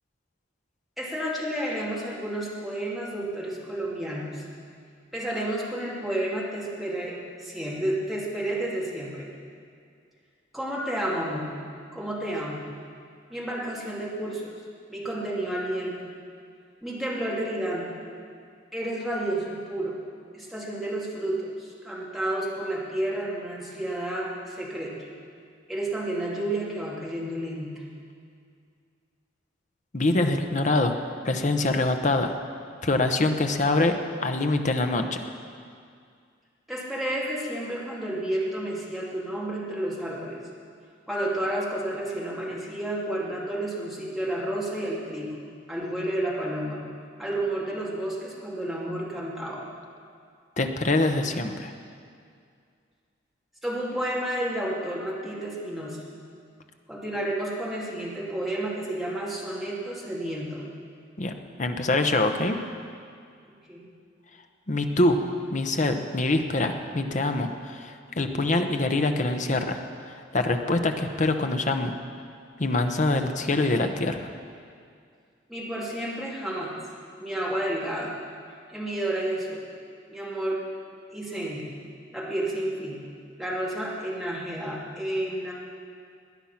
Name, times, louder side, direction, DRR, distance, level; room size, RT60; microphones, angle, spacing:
voice 1, 1.0-4.4 5.1-9.3 10.5-11.5 11.9-12.7 13.3-14.5 14.9-16.0 16.8-17.9 18.7-20.0 20.3-24.9 25.7-27.7 36.7-40.4 41.1-45.3 45.7-46.8 47.2-49.7 53.6-56.0 56.9-60.7 63.7-63.9 75.5-76.8 77.2-78.2 78.7-79.6 80.1-80.6 81.1-81.7 82.1-83.0 83.4-85.5, right 1 dB, ahead, -6 dB, 2.8 m, -31 dB
voice 2, 29.9-31.0 31.2-32.3 32.8-35.2 50.6-51.7 61.2-61.3 61.6-62.6 64.7-65.2 65.5-71.9 72.6-74.3, left 2 dB, 40° left, 6 dB, 1.0 m, -24 dB
19.0 x 10.0 x 5.9 m, 2.3 s
head